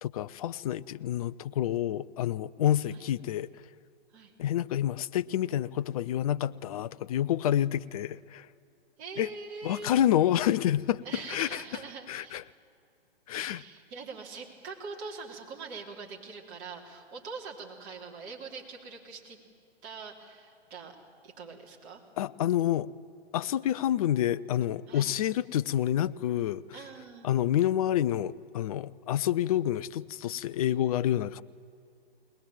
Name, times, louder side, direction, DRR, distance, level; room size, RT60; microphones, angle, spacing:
voice 1, 0.0-3.5 4.4-8.5 9.2-9.3 9.6-11.0 11.3-11.6 12.1-12.4 13.3-13.6 22.2-22.9 23.3-26.6 27.2-31.4, left 11 dB, 35° left, 0.5 m, -28 dB
voice 2, 9.0-9.9 11.0-12.4 13.4-19.4 19.8-21.0 21.2-22.0 24.9-25.2 26.7-27.3, right 4 dB, 30° right, 3.5 m, -43 dB
21.5 x 19.5 x 8.7 m
hypercardioid pair, 135°, 32 cm